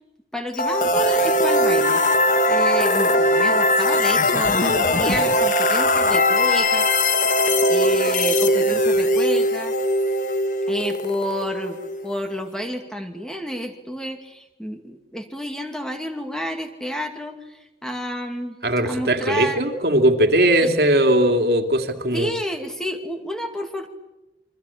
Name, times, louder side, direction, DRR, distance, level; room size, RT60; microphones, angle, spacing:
voice 1, 0.3-2.0 2.5-6.9 7.7-9.7 10.7-18.6 18.8-19.7 20.6-20.7 22.1-23.9, equal, 5° left, 5 dB, 2.4 m, -30 dB
sound 1, 0.5-12.4, left 1 dB, 45° left, 1.5 m, -20 dB
voice 2, 18.6-22.3, right 1 dB, 65° right, 5 dB, 2.8 m, -19 dB
28.0 x 24.5 x 8.7 m, 0.97 s
head